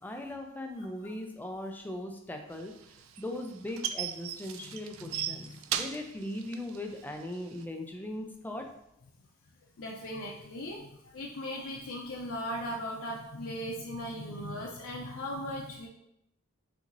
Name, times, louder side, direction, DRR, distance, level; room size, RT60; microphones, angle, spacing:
voice 1, 0.0-2.7 3.2-8.6, left 1 dB, 10° left, 3 dB, 0.4 m, -39 dB
sound 1, 2.6-7.6, right 10 dB, 80° right, 0.3 m, -36 dB
voice 2, 4.6-5.6 9.8-10.8 11.1-15.9, equal, 85° left, -2 dB, 0.6 m, -38 dB
5.9 x 2.7 x 2.6 m, 0.78 s
head